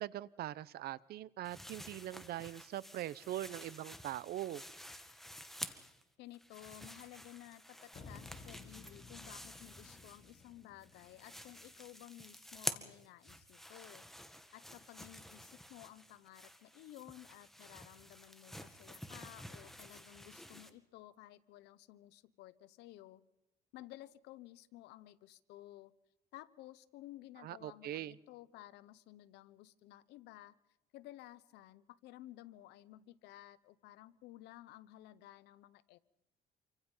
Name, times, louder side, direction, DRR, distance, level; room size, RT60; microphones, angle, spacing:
voice 1, 0.0-4.6 27.4-28.2, right 13 dB, 65° right, 20 dB, 0.8 m, -42 dB
sound 1, 1.4-6.0 6.3-10.5 10.8-20.7, equal, ahead, 2.0 m, -49 dB
voice 2, 6.2-23.2 23.7-25.9 26.3-30.6 30.9-36.0, left 15 dB, 90° left, 16 dB, 1.1 m, -55 dB
sound 2, 7.9-12.0, left 4 dB, 40° left, 2.8 m, -56 dB
27.5 x 25.0 x 5.6 m, 0.86 s
cardioid pair, 110°, 17 cm